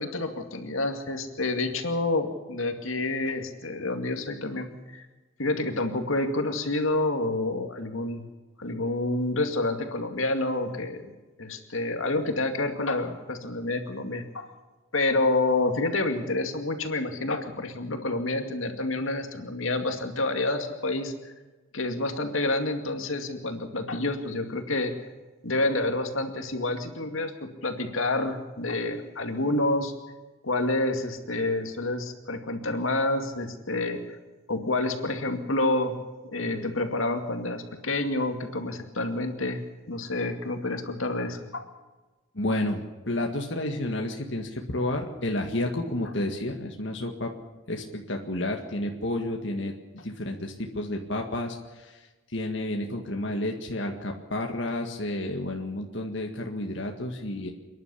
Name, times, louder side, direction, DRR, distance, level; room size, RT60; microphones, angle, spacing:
voice 1, 0.0-5.1 5.4-8.3 8.6-11.1 11.4-14.5 14.9-21.1 21.7-24.9 25.4-27.3 27.6-29.9 30.4-34.0 34.5-36.0 36.3-39.6 39.9-41.6, left 2 dB, 85° left, 5 dB, 2.3 m, -28 dB
voice 2, 42.4-47.3 47.7-49.7 50.0-52.0 52.3-57.5, left 1 dB, 65° left, 2 dB, 1.9 m, -31 dB
28.5 x 11.0 x 8.5 m, 1.2 s
head